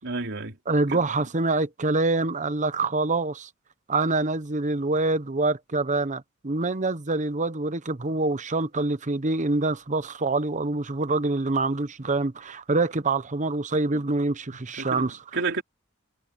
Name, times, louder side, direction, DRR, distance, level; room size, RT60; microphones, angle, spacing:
voice 1, 0.0-0.6 0.9-1.0 14.5-15.6, right 3 dB, 60° right, 3.4 m, -31 dB
voice 2, 0.7-3.5 3.9-15.2, right 3 dB, 35° right, 1.0 m, -25 dB
head